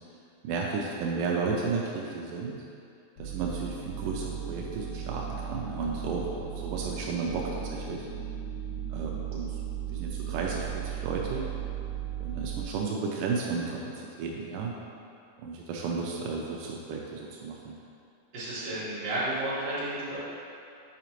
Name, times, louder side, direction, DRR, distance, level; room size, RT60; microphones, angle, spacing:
voice 1, 0.4-2.6 3.2-8.1 8.9-9.6 9.9-11.5 12.2-14.7 15.4-17.8, right 4 dB, 90° right, -2 dB, 2.1 m, -33 dB
sound 1, 3.2-12.6, right 9 dB, 75° left, 2.3 m, -36 dB
voice 2, 18.3-20.2, right 1 dB, 55° right, -11 dB, 2.6 m, -32 dB
6.8 x 5.0 x 3.0 m, 2.5 s
omnidirectional pair, 3.7 m